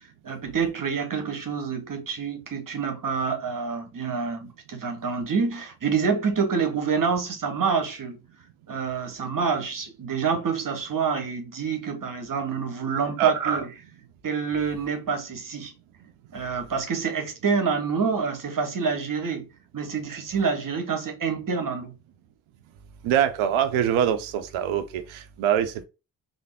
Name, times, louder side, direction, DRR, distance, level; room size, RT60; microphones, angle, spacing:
voice 1, 0.2-8.2 8.7-13.7 14.2-15.7 16.3-19.5 19.7-21.9, right 5 dB, 40° right, 1.0 m, -27 dB
voice 2, 23.0-25.8, right 9 dB, 75° right, 0.7 m, -24 dB
3.4 x 2.0 x 3.3 m
hypercardioid pair, 40°, 49 cm